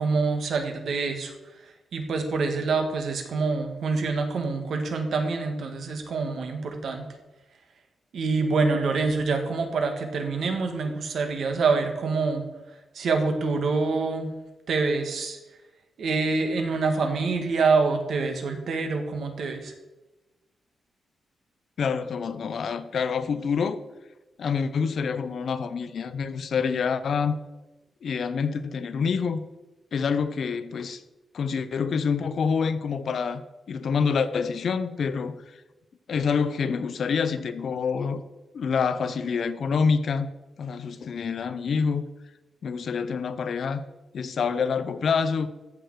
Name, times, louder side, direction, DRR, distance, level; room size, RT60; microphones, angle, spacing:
voice 1, 0.0-1.3 1.6-7.1 8.1-12.4 12.9-14.3 14.7-15.4 16.0-19.7, right 4 dB, 65° right, 5 dB, 1.7 m, -26 dB
voice 2, 21.8-23.8 24.4-27.4 28.0-29.4 29.9-31.0 31.3-33.4 33.7-35.6 36.1-38.2 38.5-40.3 40.6-42.0 42.6-43.8 44.1-45.5, left 5 dB, 55° left, 12 dB, 0.7 m, -27 dB
14.5 x 6.6 x 4.7 m, 1.1 s
wide cardioid pair, 150°, 0 cm